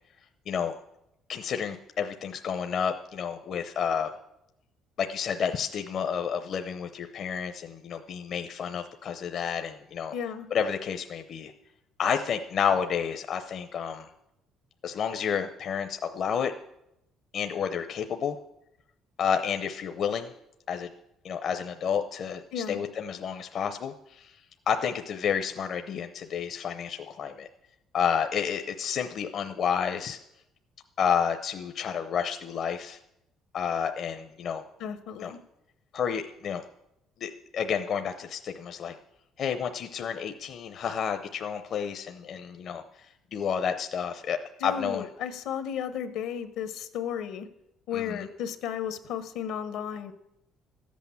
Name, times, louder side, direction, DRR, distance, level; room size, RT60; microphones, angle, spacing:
voice 1, 1.3-4.1 5.0-10.1 10.5-11.5 12.0-14.1 14.8-16.5 17.3-18.4 19.2-20.3 20.7-20.9 21.2-24.3 24.7-27.5 27.9-30.2 31.0-33.0 33.5-34.6 35.2-35.3 35.9-36.6 37.2-38.9 39.4-42.8 43.3-45.0 47.9-48.3, left 7 dB, 50° left, 7 dB, 0.7 m, -30 dB
voice 2, 10.1-10.5 22.5-22.8 34.8-35.4 44.6-47.5 47.9-50.1, left 8 dB, 80° left, 10 dB, 1.2 m, -34 dB
13.5 x 8.4 x 7.1 m, 0.84 s
cardioid pair, 120°, 0 cm